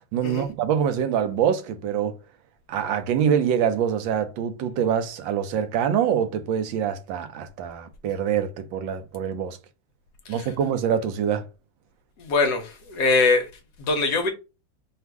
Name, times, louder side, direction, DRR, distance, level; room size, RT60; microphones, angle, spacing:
voice 1, 0.1-2.2 2.7-9.6 10.3-11.5, right 8 dB, 80° right, 1.3 m, -25 dB
voice 2, 12.2-13.5 13.8-14.3, left 3 dB, 65° left, 1.2 m, -23 dB
3.5 x 2.4 x 4.5 m
omnidirectional pair, 2.1 m